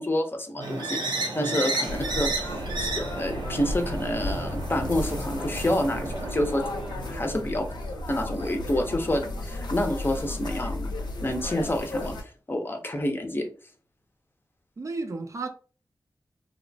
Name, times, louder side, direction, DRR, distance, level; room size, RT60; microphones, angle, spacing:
voice 1, 0.0-2.3 2.8-6.6 7.1-7.6 8.1-10.9 11.2-13.5, left 1 dB, 30° left, 0.5 m, -28 dB
voice 2, 0.6-0.9 1.4-1.6 6.9-7.5 14.8-15.5, right 3 dB, 45° right, 0.4 m, -35 dB
sound 1, 0.6-7.4, right 2 dB, 85° right, 0.6 m, -33 dB
sound 2, 1.9-12.2, left 1 dB, 75° left, 0.6 m, -34 dB
2.9 x 2.1 x 2.6 m
wide cardioid pair, 70°, 8 cm